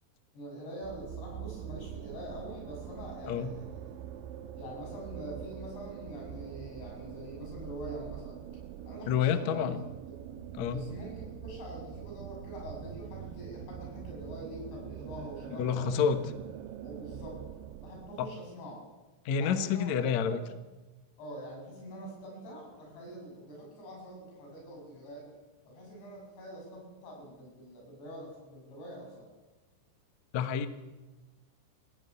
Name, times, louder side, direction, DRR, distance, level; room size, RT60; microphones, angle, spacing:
voice 1, 0.3-3.9 4.6-8.4 8.9-9.7 10.7-16.0 16.8-17.4 17.8-18.8 19.4-20.4 21.2-25.3 25.7-29.3, right 1 dB, 65° left, 0 dB, 9.4 m, -44 dB
sound 1, 0.8-18.3, right 10 dB, 85° right, 3.4 m, -44 dB
voice 2, 9.1-9.8 10.5-10.8 15.6-16.2 18.2-18.3 19.2-20.4 30.3-30.7, left 7 dB, 85° left, 10 dB, 1.5 m, -28 dB
22.0 x 16.0 x 9.6 m, 1.2 s
omnidirectional pair, 5.4 m